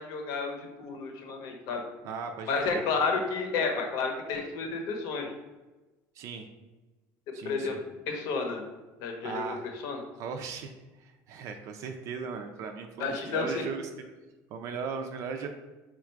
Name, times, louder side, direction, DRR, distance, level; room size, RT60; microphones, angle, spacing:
voice 1, 0.0-1.8 2.5-5.3 7.3-7.8 8.1-8.6 9.0-10.0 13.0-13.6, left 4 dB, 60° left, 3 dB, 0.8 m, -31 dB
voice 2, 2.0-2.8 6.1-6.5 7.3-7.8 9.2-9.7 10.2-10.7 11.0-13.9 14.5-15.5, right 5 dB, 45° right, 5 dB, 0.4 m, -37 dB
4.4 x 2.4 x 4.4 m, 1.1 s
cardioid pair, 160°, 7 cm